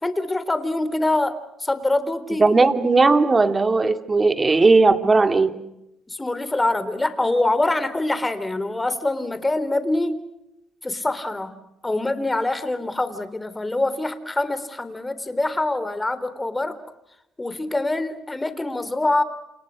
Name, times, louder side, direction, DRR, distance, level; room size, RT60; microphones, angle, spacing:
voice 1, 0.0-2.5 6.1-10.2 10.8-11.5 11.8-16.8 17.4-19.2, left 2 dB, 15° left, 13 dB, 3.7 m, -24 dB
voice 2, 2.4-5.5, right 3 dB, 25° right, 9 dB, 2.7 m, -17 dB
30.0 x 28.5 x 6.4 m, 0.85 s
cardioid pair, 90°, 0 cm